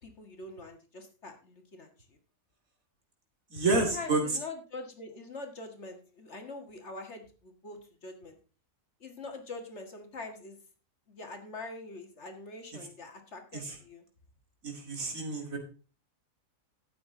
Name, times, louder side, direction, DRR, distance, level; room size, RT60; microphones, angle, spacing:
voice 1, 0.0-2.2 3.7-8.4 9.0-10.6 11.1-14.0, left 3 dB, 55° left, 5 dB, 2.2 m, -44 dB
voice 2, 3.5-4.2 13.6-13.7 14.6-15.6, right 3 dB, 90° right, 3 dB, 3.1 m, -29 dB
12.5 x 8.5 x 3.8 m, 0.36 s
omnidirectional pair, 1.4 m